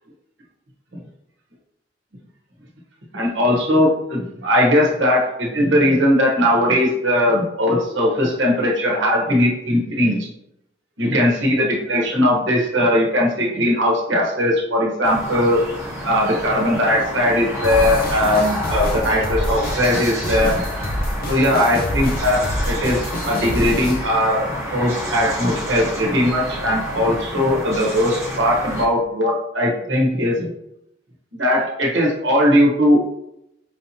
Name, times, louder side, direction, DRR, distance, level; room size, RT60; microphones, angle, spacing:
voice 1, 3.1-10.3 11.0-15.6 16.0-20.6 21.3-24.4 24.7-30.5 31.3-33.0, left 1 dB, 80° right, -3 dB, 1.0 m, -19 dB
sound 1, 15.0-28.9, equal, 15° right, 0.9 m, -29 dB
sound 2, 17.6-24.0, left 1 dB, 50° left, 0.7 m, -27 dB
4.9 x 2.8 x 2.8 m, 0.83 s
head